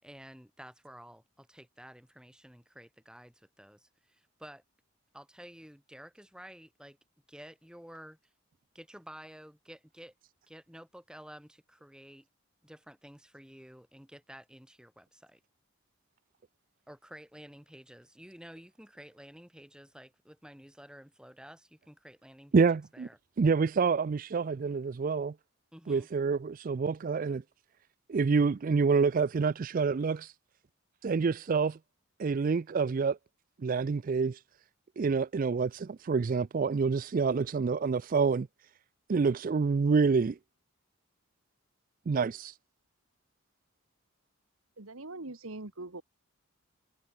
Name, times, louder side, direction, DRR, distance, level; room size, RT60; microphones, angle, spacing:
voice 1, 0.0-4.6 5.1-7.0 7.3-8.2 8.7-10.1 10.5-12.3 12.6-15.4 16.9-22.6 22.9-23.2 25.7-26.1, equal, 5° right, 7.9 m, -51 dB
voice 2, 22.5-23.1 23.4-25.3 25.9-27.4 28.1-30.3 31.0-31.8 32.2-33.2 33.6-34.4 35.0-38.5 39.1-40.4 42.1-42.6, right 5 dB, 40° right, 0.4 m, -27 dB
voice 3, 44.8-46.0, right 2 dB, 75° right, 2.0 m, -42 dB
head